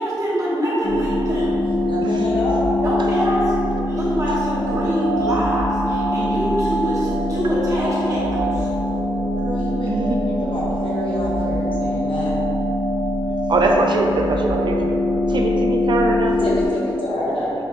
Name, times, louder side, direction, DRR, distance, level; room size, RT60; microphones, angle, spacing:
voice 1, 0.0-1.5 2.8-3.5 3.9-8.7, equal, 40° right, -8 dB, 1.1 m, -24 dB
sound 1, 0.8-16.7, left 1 dB, 60° left, 0.5 m, -22 dB
voice 2, 1.8-2.8 9.3-12.3 16.4-17.5, left 1 dB, 75° left, -7 dB, 1.0 m, -27 dB
voice 3, 9.9-10.2 13.5-14.8 15.3-16.4, right 2 dB, 60° right, 1 dB, 0.3 m, -21 dB
6.3 x 2.4 x 2.8 m, 2.9 s
wide cardioid pair, 115°, 9 cm